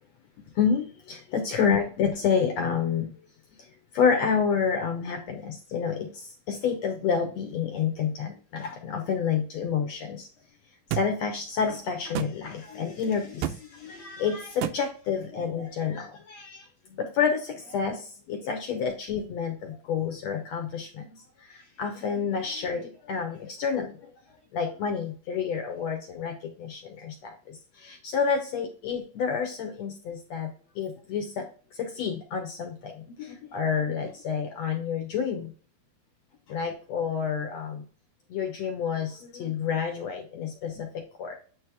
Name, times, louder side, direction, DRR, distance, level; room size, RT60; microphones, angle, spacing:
voice 1, 0.5-3.1 3.9-10.3 10.9-16.7 17.0-24.1 24.5-31.4 31.7-35.5 36.5-37.8 38.3-41.4, left 6 dB, 70° left, 3 dB, 1.7 m, -29 dB
sound 1, 10.9-11.1 12.1-12.3 13.4-13.6 14.6-14.8, right 12 dB, 85° right, 2.5 m, -29 dB
9.2 x 3.2 x 4.8 m, 0.40 s
omnidirectional pair, 4.2 m